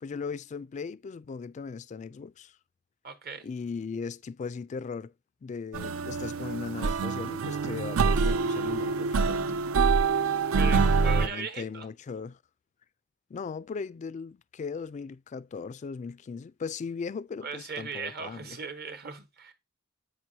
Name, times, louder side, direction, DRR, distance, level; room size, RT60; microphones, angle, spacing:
voice 1, 0.0-2.5 3.4-5.1 5.4-9.6 10.5-12.4 13.3-18.6, left 5 dB, 35° left, 0.3 m, -38 dB
voice 2, 3.0-3.5 10.6-11.9 17.4-19.5, right 5 dB, 50° right, 1.1 m, -38 dB
sound 1, 5.7-11.3, right 4 dB, 80° right, 0.5 m, -25 dB
8.3 x 6.0 x 2.8 m
head